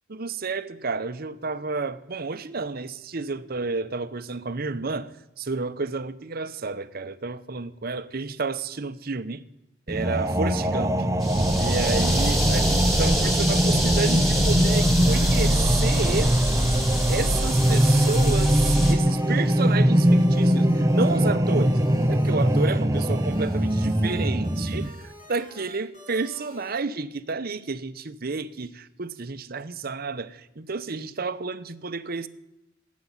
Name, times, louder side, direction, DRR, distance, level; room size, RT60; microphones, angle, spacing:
voice 1, 0.1-9.4 9.9-11.0 11.6-16.3 17.1-21.8 22.1-32.3, right 4 dB, 50° right, 0.8 m, -31 dB
sound 1, 9.9-24.9, equal, 15° right, 0.7 m, -22 dB
sound 2, 11.2-18.9, equal, ahead, 3.1 m, -25 dB
sound 3, 14.7-26.7, equal, 40° left, 5.6 m, -47 dB
16.0 x 8.4 x 9.9 m
head